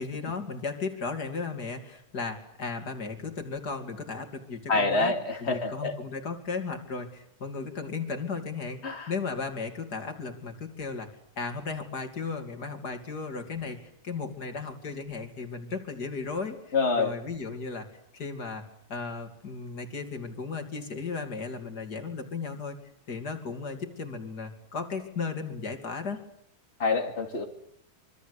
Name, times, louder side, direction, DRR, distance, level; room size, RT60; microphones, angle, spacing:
voice 1, 0.0-5.1 5.4-8.8 9.1-11.1 11.4-13.8 14.0-17.9 18.1-18.6 18.9-22.8 23.1-26.2, left 4 dB, 90° left, 6 dB, 3.4 m, -35 dB
voice 2, 4.7-6.0 8.8-9.1 16.7-17.1 26.8-27.4, left 3 dB, 40° left, 4 dB, 2.9 m, -26 dB
26.0 x 24.5 x 8.2 m, 0.71 s
omnidirectional pair, 1.7 m